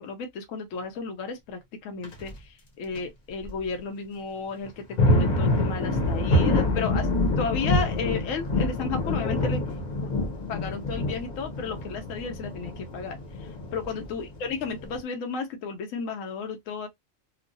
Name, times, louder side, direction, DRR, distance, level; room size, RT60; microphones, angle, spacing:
voice 1, 0.0-2.3 2.8-7.1 7.4-9.6 10.0-10.1 10.5-13.2 13.7-16.9, left 5 dB, 80° left, 1.0 m, -33 dB
sound 1, 2.0-2.3 2.9-3.0 3.4-3.5 4.7-15.0, left 1 dB, 40° left, 0.8 m, -26 dB
3.0 x 2.1 x 2.5 m
omnidirectional pair, 1.4 m